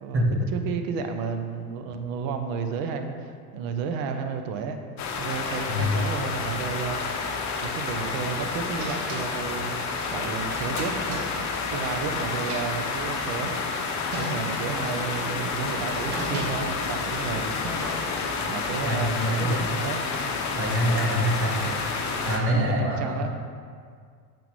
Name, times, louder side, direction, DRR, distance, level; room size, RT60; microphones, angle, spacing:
voice 1, 0.5-4.8 5.2-7.0 7.6-9.7 10.1-11.2 11.7-13.5 14.1-17.5 18.4-20.0 21.5-21.8 22.5-23.3, right 5 dB, 50° right, 6 dB, 0.8 m, -32 dB
sound 1, 5.0-22.4, left 4 dB, 40° left, 0.9 m, -30 dB
voice 2, 5.7-6.0 18.8-19.6 20.6-21.6 22.2-23.2, equal, 30° right, -2 dB, 1.6 m, -25 dB
sound 2, 8.8-12.1 12.3-13.4 13.8-13.9 14.1-14.8 15.4-18.3, right 1 dB, 80° right, 1.2 m, -37 dB
6.8 x 5.8 x 3.2 m, 2.1 s
hypercardioid pair, 70°, 45 cm